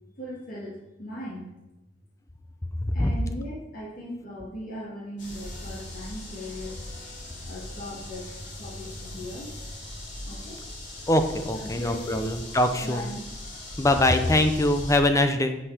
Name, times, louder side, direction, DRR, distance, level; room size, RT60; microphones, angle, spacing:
voice 1, 0.2-1.5 2.9-9.5 10.2-10.6 11.5-12.3 12.7-13.2, equal, 50° left, -8 dB, 2.4 m, -38 dB
sound 1, 5.2-15.0, left 1 dB, 85° left, 3.2 m, -40 dB
voice 2, 11.1-13.1 13.8-15.6, left 1 dB, 15° left, 7 dB, 0.7 m, -23 dB
9.9 x 5.5 x 5.1 m, 0.94 s
head